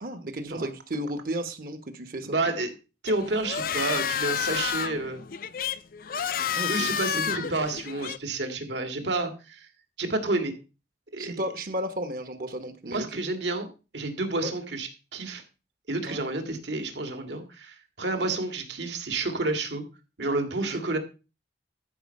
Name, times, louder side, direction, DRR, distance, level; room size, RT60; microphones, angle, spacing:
voice 1, 0.0-2.3 6.5-6.9 7.2-7.5 11.2-13.2 14.4-14.5 16.0-16.2 18.2-18.3 20.7-20.8, right 1 dB, 50° right, 9 dB, 1.0 m, -34 dB
voice 2, 2.2-2.7 3.0-5.2 6.7-9.7 10.0-10.5 11.1-11.4 12.8-13.7 13.9-15.4 15.9-19.8 20.2-21.0, right 2 dB, 75° right, 5 dB, 2.1 m, -30 dB
sound 1, 3.1-8.2, left 8 dB, 50° left, 0.4 m, -30 dB
13.5 x 5.6 x 5.3 m, 0.32 s
head